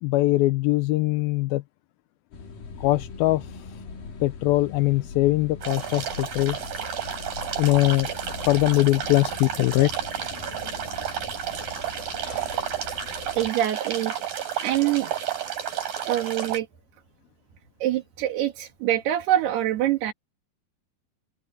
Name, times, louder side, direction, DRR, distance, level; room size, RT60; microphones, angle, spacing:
voice 1, 0.0-1.6 2.8-3.5 4.2-6.6 7.6-8.1 8.4-9.9, left 18 dB, 90° left, 2.1 m, -22 dB
sound 1, 2.3-13.5, left 4 dB, 55° left, 4.6 m, -41 dB
sound 2, 5.6-16.6, right 9 dB, 55° right, 5.7 m, -31 dB
voice 2, 13.4-14.1 14.6-15.1 16.1-16.7 17.8-20.1, right 13 dB, 70° right, 3.8 m, -24 dB
open air
omnidirectional pair, 4.9 m